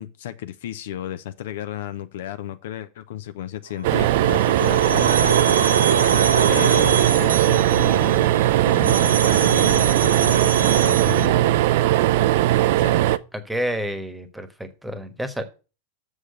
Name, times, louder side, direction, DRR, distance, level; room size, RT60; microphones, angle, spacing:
voice 1, 0.0-5.8 6.5-11.5 12.8-13.0, left 12 dB, 55° left, 0.6 m, -33 dB
sound 1, 3.8-13.2, right 14 dB, 50° right, 0.4 m, -19 dB
sound 2, 3.8-11.3, right 5 dB, 75° right, 0.9 m, -25 dB
voice 2, 13.3-15.4, equal, 5° right, 1.3 m, -29 dB
7.2 x 6.4 x 6.4 m
figure-of-eight pair, 90°, 0 cm